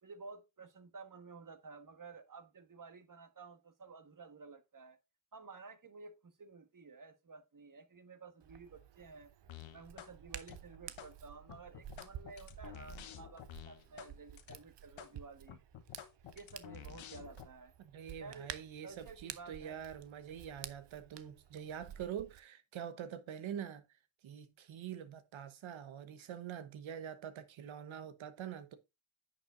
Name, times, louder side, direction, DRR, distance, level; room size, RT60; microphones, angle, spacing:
voice 1, 0.0-5.0 5.3-9.3 9.7-15.6 16.3-17.7 18.2-18.5 18.8-19.8, right 4 dB, 45° right, 1.5 m, -53 dB
Hands, 8.4-22.4, right 10 dB, 65° right, 0.8 m, -52 dB
sound 1, 9.5-10.1 10.4-11.1 11.5-14.1 14.4-14.6 15.0-15.1 15.5-17.5, left 10 dB, 85° left, 1.1 m, -50 dB
voice 2, 17.8-23.8 24.2-28.8, right 9 dB, 85° right, 1.1 m, -45 dB
10.0 x 7.0 x 2.6 m
cardioid pair, 60°, 46 cm